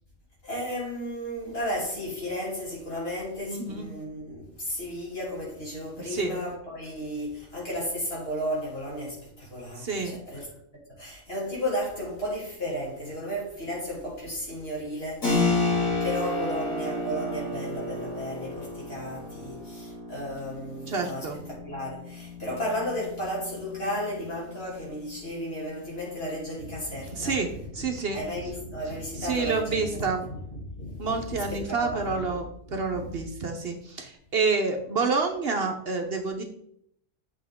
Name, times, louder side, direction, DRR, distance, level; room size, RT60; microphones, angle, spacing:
voice 1, 0.4-10.5 10.9-32.4 32.7-33.1, equal, 45° left, 3.3 m, -34 dB
voice 2, 3.5-3.9 6.0-6.4 9.8-10.2 20.9-21.4 27.1-27.5 27.7-28.2 29.2-30.3 31.0-36.4, right 4 dB, 50° right, 1.0 m, -28 dB
Keyboard (musical), 15.2-25.6, left 2 dB, 90° left, 2.7 m, -32 dB
8.2 x 5.6 x 3.6 m
omnidirectional pair, 1.4 m